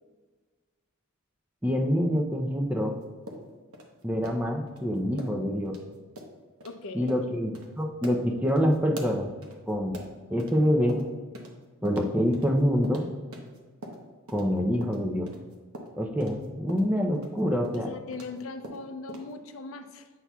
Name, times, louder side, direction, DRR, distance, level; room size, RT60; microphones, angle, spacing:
voice 1, 1.6-3.0 4.0-5.8 6.9-9.3 9.7-10.0 10.3-11.0 11.8-13.1 14.3-15.3 16.0-17.9, equal, 5° right, 2 dB, 0.5 m, -26 dB
sound 1, 3.3-4.8 5.2-5.4 5.6-5.8 6.1-6.3 6.6-6.7 7.1-7.3 7.5-7.7 8.0-10.6 10.9-11.6 11.8-14.5 14.8-18.4 18.6-19.3, right 1 dB, 90° right, 0.9 m, -43 dB
voice 2, 6.6-7.1 17.8-20.1, left 3 dB, 70° left, 8 dB, 0.5 m, -39 dB
8.1 x 5.8 x 2.3 m, 1.4 s
head